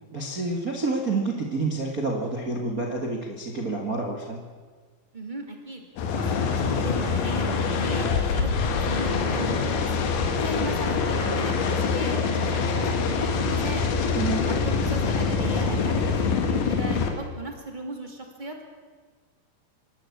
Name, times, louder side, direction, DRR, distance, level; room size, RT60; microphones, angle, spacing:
voice 1, 0.1-4.4 14.1-14.5, right 3 dB, 55° right, 0 dB, 0.9 m, -28 dB
voice 2, 5.1-5.8 6.1-18.6, right 2 dB, 15° right, 3 dB, 1.8 m, -37 dB
sound 1, 6.0-17.1, left 5 dB, 85° left, 4.2 m, -25 dB
26.0 x 12.0 x 8.5 m, 1.5 s
omnidirectional pair, 5.0 m